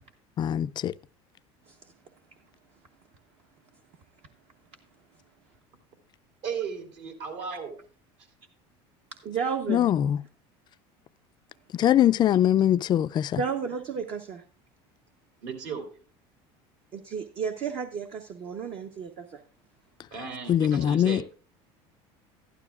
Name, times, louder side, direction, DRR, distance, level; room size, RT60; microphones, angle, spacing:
voice 1, 0.4-0.9 9.7-10.2 11.7-13.4 20.5-21.3, left 11 dB, 35° left, 0.3 m, -22 dB
voice 2, 6.4-7.8 15.4-16.0 20.1-21.3, right 6 dB, 65° right, 2.8 m, -36 dB
voice 3, 9.2-9.9 13.3-14.4 16.9-19.4, right 6 dB, 50° right, 0.9 m, -33 dB
12.0 x 11.5 x 2.4 m
supercardioid pair, 120°, 13 cm